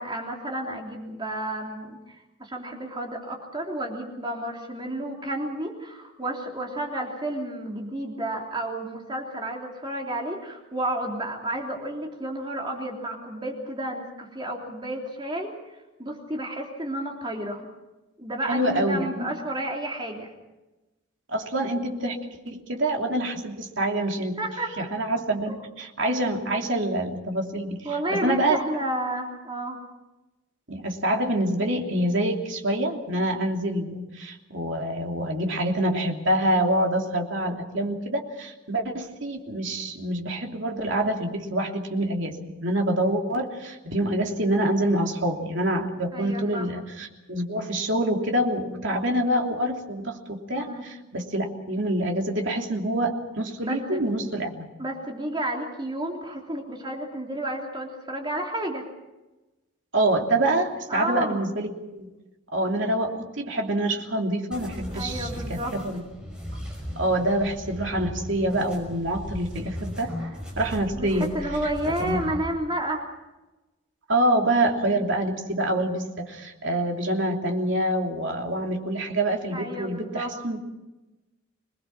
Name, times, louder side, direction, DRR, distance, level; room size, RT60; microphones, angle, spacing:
voice 1, 0.0-17.7 18.2-20.3 24.4-24.9 25.5-25.6 27.8-29.8 46.1-46.7 50.5-50.8 53.6-54.1 54.8-58.8 60.9-61.4 64.9-65.7 71.0-73.1 79.5-80.3, right 1 dB, 20° right, 0 dB, 3.3 m, -31 dB
voice 2, 18.5-19.3 21.3-24.4 24.8-28.6 30.7-54.6 59.9-62.1 62.5-66.3 67.0-70.1 70.6-71.3 72.0-72.2 74.1-80.6, right 1 dB, 60° right, 1 dB, 3.0 m, -26 dB
sound 1, 64.5-72.5, equal, 5° right, 5.6 m, -37 dB
26.5 x 20.0 x 6.1 m, 1.1 s
head